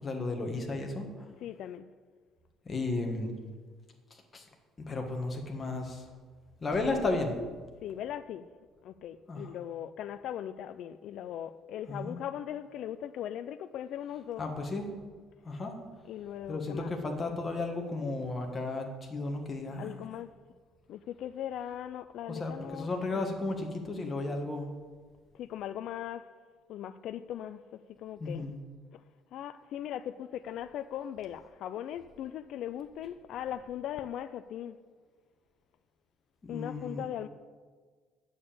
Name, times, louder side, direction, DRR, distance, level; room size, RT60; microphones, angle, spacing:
voice 1, 0.0-1.1 2.6-3.3 4.3-4.4 4.9-6.0 6.6-7.3 9.3-9.5 11.9-12.1 14.4-14.9 15.4-15.8 16.5-20.1 22.3-24.7 28.2-28.6 36.4-37.0, left 2 dB, 25° left, 1.5 m, -34 dB
voice 2, 1.4-1.9 7.8-8.5 8.8-14.4 16.0-16.9 19.8-20.3 20.9-22.9 23.2-23.3 25.3-26.3 26.7-28.5 28.9-29.0 29.3-34.8 36.5-37.3, left 10 dB, 60° left, 0.4 m, -39 dB
8.6 x 6.9 x 8.7 m
cardioid pair, 145°, 0 cm